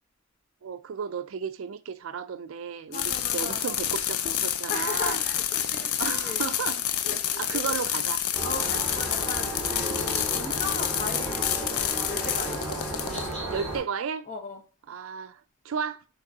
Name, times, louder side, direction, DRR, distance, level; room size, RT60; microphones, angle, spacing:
voice 1, 0.6-5.2 6.0-6.8 7.4-8.2 13.5-14.3 14.9-16.0, right 6 dB, 65° right, 0.4 m, -33 dB
sound 1, 2.9-13.7, left 10 dB, 80° left, 0.4 m, -29 dB
voice 2, 2.9-3.7 4.7-6.5 7.0-7.7 8.4-12.6 13.1-13.6 14.3-14.6, left 3 dB, 35° left, 0.9 m, -38 dB
sound 2, 8.3-13.8, right 2 dB, 5° left, 1.9 m, -34 dB
6.0 x 3.0 x 2.7 m
head